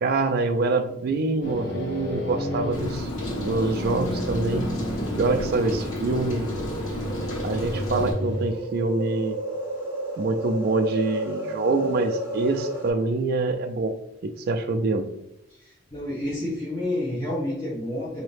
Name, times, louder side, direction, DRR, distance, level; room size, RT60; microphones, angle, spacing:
voice 1, 0.0-3.1 3.4-4.7 5.1-6.5 7.4-9.4 10.2-14.0 14.2-15.1, right 3 dB, 50° right, 7 dB, 0.3 m, -25 dB
sound 1, 1.4-8.5, equal, 55° left, 1.1 m, -32 dB
Rain, 2.7-8.1, left 1 dB, 90° left, 1.3 m, -32 dB
sound 2, 4.3-12.9, right 1 dB, 10° right, 0.8 m, -33 dB
voice 2, 15.5-18.2, left 1 dB, 20° left, -10 dB, 1.3 m, -30 dB
4.0 x 2.7 x 3.3 m, 0.82 s
head